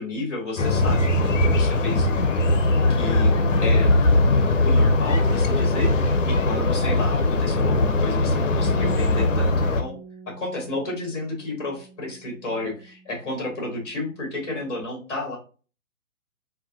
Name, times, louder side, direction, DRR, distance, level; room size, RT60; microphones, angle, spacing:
voice 1, 0.0-2.4 2.9-3.9 4.2-9.9 10.3-15.4, left 2 dB, 15° left, -1 dB, 0.7 m, -32 dB
sound 1, 0.6-9.8, left 2 dB, 60° left, 0.5 m, -20 dB
Bass guitar, 8.6-14.8, right 5 dB, 10° right, 1.0 m, -44 dB
4.1 x 2.2 x 2.5 m, 0.36 s
figure-of-eight pair, 135°, 43 cm